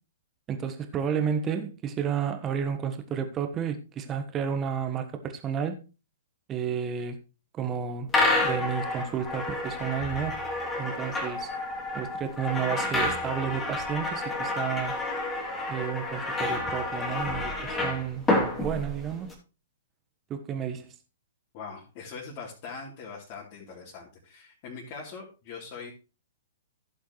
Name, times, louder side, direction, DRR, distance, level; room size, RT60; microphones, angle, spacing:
voice 1, 0.5-5.8 6.5-7.2 7.5-8.1 8.4-10.4 10.8-11.5 11.9-15.0 15.7-18.3 18.6-19.3 20.3-20.9, right 8 dB, 20° right, 1.4 m, -31 dB
sound 1, 8.1-19.3, left 2 dB, 15° left, 2.9 m, -29 dB
voice 2, 21.5-25.9, left 5 dB, 35° left, 3.4 m, -42 dB
15.5 x 7.2 x 3.2 m
figure-of-eight pair, 115°, 0 cm